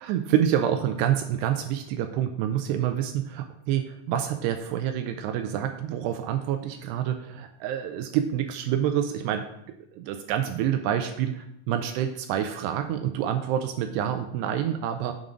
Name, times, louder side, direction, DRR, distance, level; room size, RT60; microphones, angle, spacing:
voice 1, 0.0-9.5 9.9-15.1, right 10 dB, 85° right, 7 dB, 2.4 m, -27 dB
7.5 x 7.5 x 5.1 m, 0.76 s
omnidirectional pair, 5.5 m